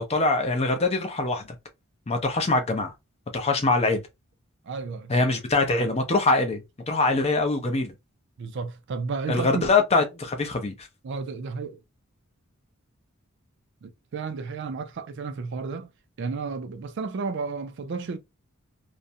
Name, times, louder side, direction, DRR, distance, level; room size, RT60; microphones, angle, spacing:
voice 1, 0.0-1.4 2.1-2.9 3.3-4.0 5.1-7.9 9.3-10.7, left 3 dB, 30° left, 0.5 m, -23 dB
voice 2, 4.6-5.1 8.4-9.7 11.0-11.8 13.8-15.9 16.2-18.2, right 4 dB, 55° right, 0.4 m, -32 dB
2.4 x 2.1 x 2.6 m
head